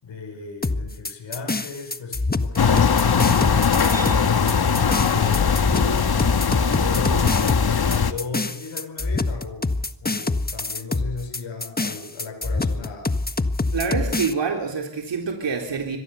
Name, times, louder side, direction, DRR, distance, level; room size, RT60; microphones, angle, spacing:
voice 1, 0.0-5.6 6.6-7.5 8.1-9.7 10.0-13.1, left 4 dB, 85° left, 2 dB, 6.2 m, -35 dB
sound 1, 0.6-14.3, left 3 dB, 20° left, 1.5 m, -26 dB
sound 2, 2.6-8.1, left 6 dB, 55° left, 1.7 m, -20 dB
sound 3, 3.9-9.7, right 3 dB, 35° right, 4.4 m, -44 dB
voice 2, 13.7-16.0, right 5 dB, 70° right, 2 dB, 3.8 m, -26 dB
25.0 x 19.0 x 6.9 m, 0.74 s
cardioid pair, 60°, 44 cm